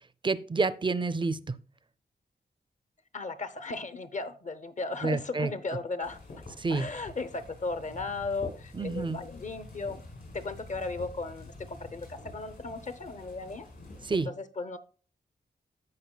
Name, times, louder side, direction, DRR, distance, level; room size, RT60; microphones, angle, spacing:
voice 1, 0.2-1.4 5.0-5.5 6.6-6.9 8.7-9.2 14.0-14.3, right 3 dB, 30° right, 15 dB, 0.4 m, -28 dB
voice 2, 3.1-6.2 6.7-10.0 10.3-13.7 14.1-14.8, left 3 dB, 45° left, 13 dB, 0.7 m, -36 dB
sound 1, 6.0-14.2, left 2 dB, 65° left, 4.9 m, -47 dB
16.0 x 5.4 x 2.2 m, 0.40 s
wide cardioid pair, 105°, 18 cm